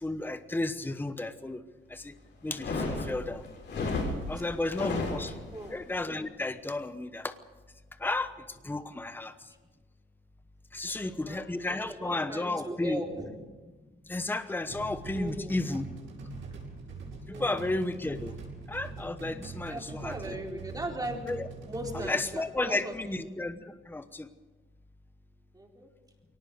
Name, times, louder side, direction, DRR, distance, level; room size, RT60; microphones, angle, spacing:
voice 1, 0.0-1.6 1.9-2.1 2.4-3.4 4.3-5.4 5.7-7.3 8.0-8.3 8.6-9.3 10.7-13.0 14.1-15.9 17.3-18.3 18.7-20.3 21.3-21.5 21.9-24.3, left 2 dB, 10° left, 11 dB, 1.0 m, -33 dB
sound 1, 2.5-5.7, left 3 dB, 65° left, 6.3 m, -33 dB
voice 2, 11.0-13.3 15.1-15.6 17.3-17.6 19.7-21.2 21.7-23.3 25.5-25.9, right 1 dB, 20° right, 1 dB, 4.2 m, -39 dB
sound 2, 14.7-22.1, right 3 dB, 80° right, 7.4 m, -42 dB
22.5 x 18.5 x 6.7 m, 1.3 s
cardioid pair, 90°, 20 cm